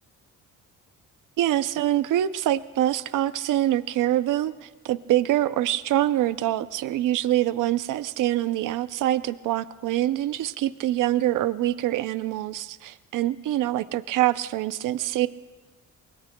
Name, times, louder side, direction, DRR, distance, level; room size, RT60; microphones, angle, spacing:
voice 1, 1.4-15.3, right 13 dB, 90° right, 13 dB, 0.5 m, -25 dB
27.0 x 23.5 x 2.2 m, 1.3 s
cardioid pair, 165°, 31 cm